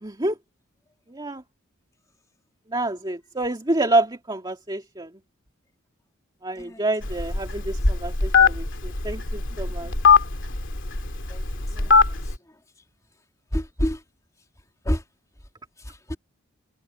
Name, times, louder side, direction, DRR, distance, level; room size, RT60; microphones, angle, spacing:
voice 1, 0.0-0.4 1.1-1.4 2.7-5.1 6.4-9.9 11.8-11.9, right 2 dB, 20° right, 2.2 m, -27 dB
voice 2, 6.6-6.9 9.8-9.9 11.3-11.5 11.8-12.3 13.5-14.0 14.8-15.0 15.8-16.2, equal, 15° left, 2.7 m, -29 dB
Telephone, 7.0-12.3, left 4 dB, 60° left, 2.8 m, -21 dB
head